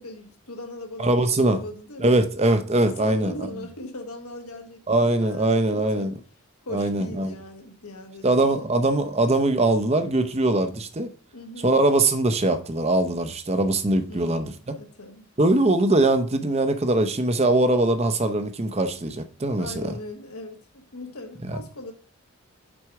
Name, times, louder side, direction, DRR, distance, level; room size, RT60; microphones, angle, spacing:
voice 1, 0.0-2.2 2.8-6.1 6.6-8.7 11.3-11.7 14.1-15.2 19.6-21.9, left 1 dB, 85° left, 1.4 m, -39 dB
voice 2, 1.0-1.6 2.0-3.3 4.9-6.1 6.7-7.4 8.2-11.1 11.6-14.5 15.4-19.9 21.5-21.6, right 2 dB, 30° right, 0.6 m, -22 dB
6.1 x 4.6 x 4.7 m
head